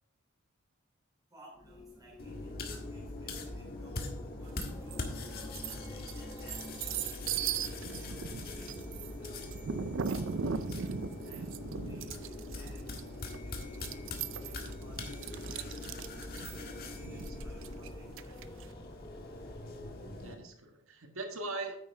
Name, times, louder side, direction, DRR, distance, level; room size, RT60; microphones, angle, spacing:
voice 1, 1.3-9.6 10.1-10.7 11.2-11.5 11.8-15.7 16.5-18.7, right 1 dB, 20° right, -5 dB, 3.2 m, -60 dB
Wind, 1.5-20.6, left 1 dB, 20° left, 0.7 m, -50 dB
sound 1, 2.2-20.4, left 2 dB, 50° left, 1.6 m, -43 dB
sound 2, 4.6-5.0 5.4-18.6, right 6 dB, 65° right, 0.5 m, -38 dB
voice 2, 20.2-21.8, right 2 dB, 90° right, 4 dB, 1.7 m, -41 dB
9.7 x 8.5 x 3.5 m, 0.74 s
head